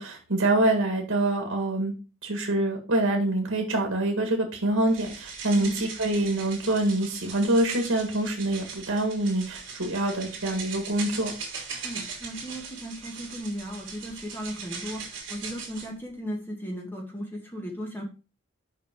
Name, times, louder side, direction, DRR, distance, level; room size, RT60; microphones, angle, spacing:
voice 1, 0.0-1.9 2.2-11.3, right 1 dB, 80° right, 2 dB, 1.8 m, -25 dB
sound 1, 4.9-15.9, right 5 dB, 60° right, 3.2 m, -40 dB
voice 2, 11.8-18.0, equal, 10° left, 0 dB, 2.0 m, -36 dB
6.7 x 5.6 x 3.7 m, 0.32 s
head